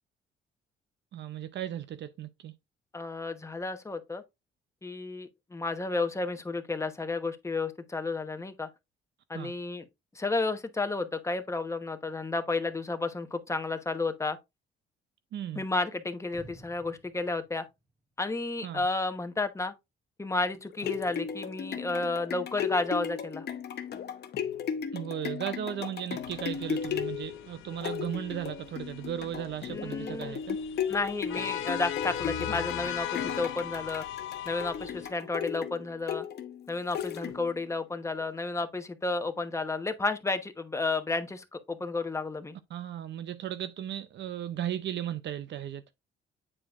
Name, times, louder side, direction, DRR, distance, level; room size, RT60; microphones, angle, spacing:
voice 1, 1.1-2.5 9.3-9.5 15.3-15.6 18.6-18.9 24.9-30.6 42.7-45.8, right 10 dB, 65° right, 0.6 m, -36 dB
voice 2, 2.9-4.2 4.8-8.7 9.3-9.8 10.1-14.4 15.5-17.6 18.2-19.7 20.2-23.5 29.7-30.4 30.9-34.0 34.4-36.3 36.7-42.6, left 3 dB, 15° left, 1.0 m, -32 dB
sound 1, 16.3-18.5 18.8-18.9, right 2 dB, 20° right, 2.0 m, -54 dB
sound 2, 20.5-37.7 38.2-38.3, left 7 dB, 55° left, 0.9 m, -36 dB
sound 3, 26.2-35.1, left 12 dB, 85° left, 0.6 m, -39 dB
8.7 x 4.6 x 2.5 m
cardioid pair, 90°, 20 cm